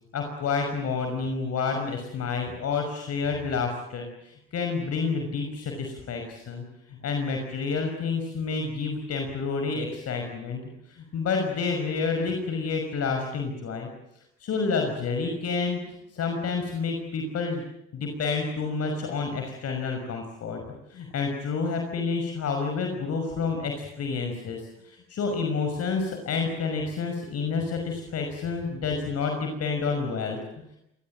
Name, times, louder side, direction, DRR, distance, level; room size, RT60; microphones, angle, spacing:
voice 1, 0.1-10.6 10.9-13.9 14.4-15.8 16.1-17.6 17.9-20.6 20.9-30.4, left 4 dB, 55° left, 3 dB, 5.9 m, -29 dB
26.0 x 19.5 x 9.1 m, 0.80 s
hypercardioid pair, 65°, 30 cm